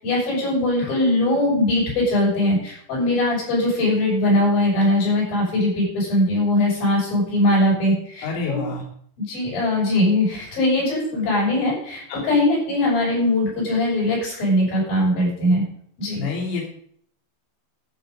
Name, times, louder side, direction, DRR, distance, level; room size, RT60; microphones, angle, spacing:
voice 1, 0.0-8.7 9.2-15.6 16.0-16.2, left 1 dB, 50° left, -7 dB, 8.4 m, -21 dB
voice 2, 8.2-8.8 12.1-12.2 16.1-16.7, left 5 dB, 65° left, -4 dB, 5.1 m, -27 dB
12.0 x 9.2 x 5.6 m, 0.63 s
omnidirectional pair, 5.6 m